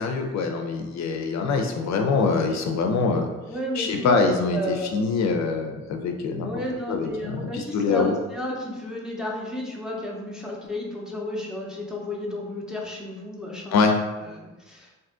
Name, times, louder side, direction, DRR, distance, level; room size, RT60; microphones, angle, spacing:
voice 1, 0.0-3.3 3.8-6.5 6.9-8.1 13.7-14.0, left 4 dB, 65° left, 4 dB, 0.4 m, -24 dB
voice 2, 3.5-5.1 6.4-13.8 14.2-14.9, equal, ahead, -3 dB, 0.7 m, -32 dB
2.6 x 2.4 x 3.6 m, 1.1 s
cardioid pair, 90°, 30 cm